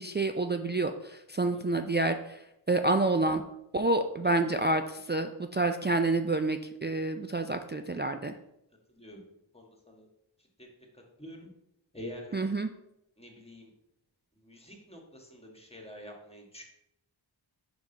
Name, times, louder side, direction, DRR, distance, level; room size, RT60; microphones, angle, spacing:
voice 1, 0.0-3.4 3.7-8.3 12.3-12.7, right 2 dB, 25° right, 6 dB, 0.3 m, -28 dB
voice 2, 11.9-12.5 13.2-13.7 14.4-16.6, left 1 dB, 10° left, 1 dB, 1.5 m, -46 dB
5.2 x 4.8 x 3.9 m, 0.81 s
wide cardioid pair, 45°, 48 cm